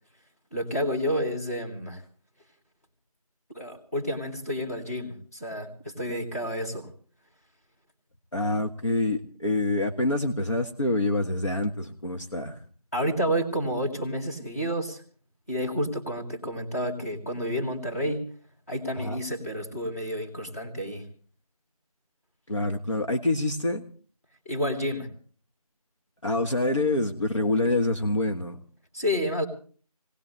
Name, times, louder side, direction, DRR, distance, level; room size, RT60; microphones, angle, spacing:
voice 1, 0.5-2.0 3.5-6.9 12.9-15.0 15.5-18.3 18.7-21.1 24.5-25.1 28.9-29.5, equal, 25° left, -2 dB, 2.3 m, -30 dB
voice 2, 8.3-12.6 19.0-19.2 22.5-23.8 26.2-28.6, left 2 dB, 50° left, 2 dB, 1.5 m, -26 dB
22.5 x 18.5 x 3.2 m, 0.42 s
figure-of-eight pair, 175°, 19 cm